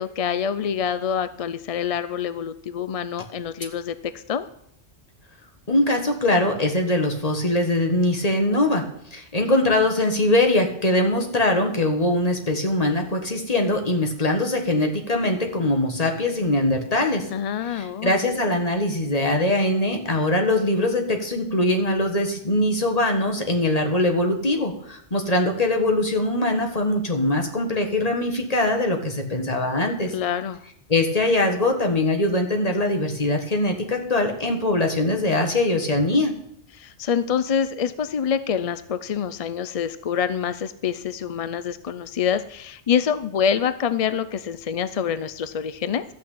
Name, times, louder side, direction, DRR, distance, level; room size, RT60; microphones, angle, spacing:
voice 1, 0.0-4.5 17.3-18.2 30.1-30.6 36.7-46.0, left 8 dB, 55° left, 13 dB, 0.4 m, -26 dB
voice 2, 5.7-8.8 9.1-17.3 17.7-30.1 30.9-36.3, left 1 dB, 35° left, 3 dB, 1.7 m, -22 dB
13.0 x 6.2 x 8.5 m, 0.72 s
omnidirectional pair, 1.2 m